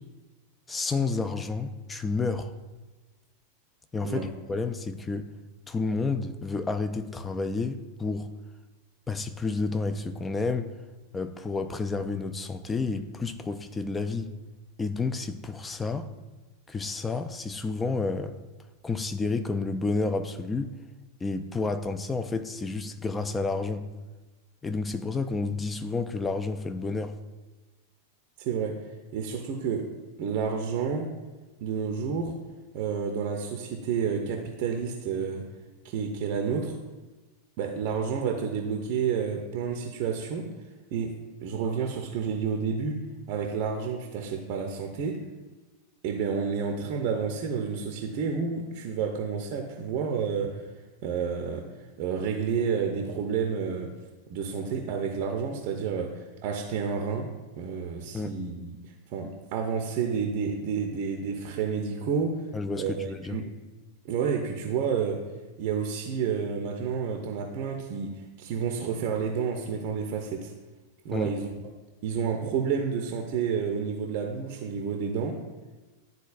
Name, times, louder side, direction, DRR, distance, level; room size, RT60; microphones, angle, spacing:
voice 1, 0.7-2.5 3.9-5.3 5.7-8.3 9.1-10.7 11.1-14.3 14.8-16.1 16.7-18.4 18.8-20.7 21.2-23.9 24.6-27.2 58.1-58.4 62.5-63.4 71.1-71.3, left 3 dB, 15° left, 9 dB, 0.4 m, -30 dB
voice 2, 28.4-29.9 30.2-31.1 31.6-32.3 32.7-35.5 35.8-36.8 37.6-40.5 40.9-45.2 46.0-50.7 51.0-51.7 52.0-53.9 54.3-62.4 62.8-63.5 64.0-65.2 65.6-70.5 71.0-71.5 72.0-75.4, right 6 dB, 45° right, 3 dB, 0.6 m, -30 dB
11.0 x 3.9 x 2.4 m, 1.2 s
figure-of-eight pair, 90°, 0 cm